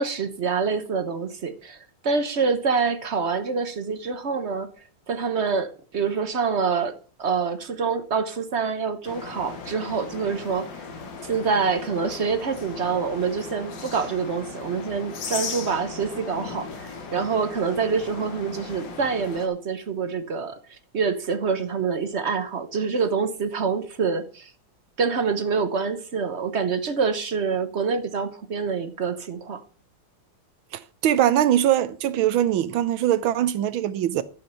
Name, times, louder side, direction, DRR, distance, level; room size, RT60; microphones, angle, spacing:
voice 1, 0.0-4.7 5.1-6.9 7.2-10.7 11.2-20.6 20.9-24.5 25.0-29.6, right 5 dB, 45° right, 1.0 m, -26 dB
sound 1, 9.0-19.5, left 4 dB, 65° left, 2.3 m, -37 dB
voice 2, 30.7-34.2, right 11 dB, 80° right, 1.6 m, -22 dB
11.0 x 8.4 x 5.6 m
omnidirectional pair, 2.2 m